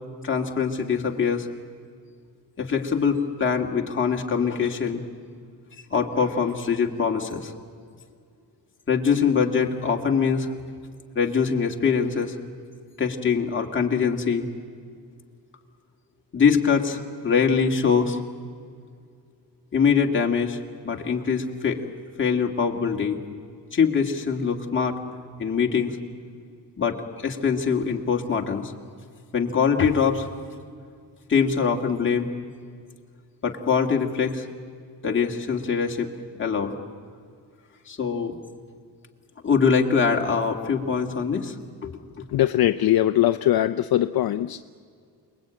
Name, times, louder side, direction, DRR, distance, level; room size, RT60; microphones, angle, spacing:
voice 1, 0.2-1.5 2.6-5.0 5.9-7.5 8.9-10.5 11.2-12.3 13.0-14.5 16.3-18.2 19.7-20.6 20.8-21.9 22.2-23.2 23.7-25.0 25.4-26.0 26.8-27.0 27.2-28.7 29.3-30.3 31.3-32.3 33.4-34.5 35.0-36.1 36.4-36.7 37.9-38.4 39.4-41.6 41.8-42.2, left 6 dB, 30° left, 1 dB, 2.0 m, -23 dB
voice 2, 42.3-44.6, left 13 dB, 60° left, 9 dB, 0.6 m, -21 dB
28.5 x 20.5 x 9.0 m, 2.2 s
wide cardioid pair, 175°, 41 cm